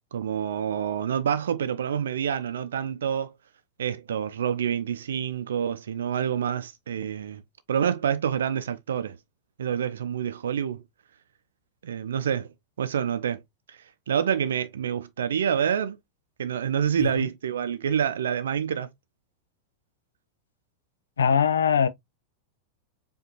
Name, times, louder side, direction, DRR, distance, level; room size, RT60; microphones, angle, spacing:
voice 1, 0.1-3.3 3.8-7.4 7.7-9.2 9.6-10.8 11.8-12.5 12.8-13.4 14.1-16.0 16.4-18.9, right 8 dB, 65° right, 0.6 m, -27 dB
voice 2, 21.2-21.9, left 7 dB, 70° left, 0.4 m, -21 dB
4.9 x 2.6 x 2.9 m
figure-of-eight pair, 90°, 0 cm